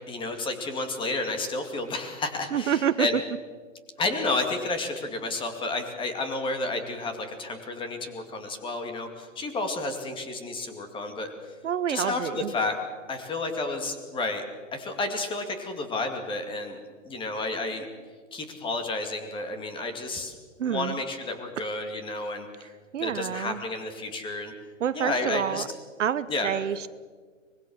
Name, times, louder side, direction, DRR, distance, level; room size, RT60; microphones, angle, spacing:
voice 1, 0.1-3.1 4.0-11.3 11.9-12.8 13.1-14.4 14.7-16.8 17.0-17.9 18.3-20.3 20.7-22.7 23.0-24.5 24.9-25.6 26.3-26.5, left 2 dB, 15° left, 6 dB, 2.4 m, -31 dB
voice 2, 2.5-3.2 11.6-12.5 20.6-21.0 21.6-21.7 22.6-23.6 24.8-25.7 26.0-26.9, right 9 dB, 70° right, 15 dB, 1.0 m, -28 dB
24.5 x 21.0 x 6.3 m, 1.5 s
hypercardioid pair, 145°, 38 cm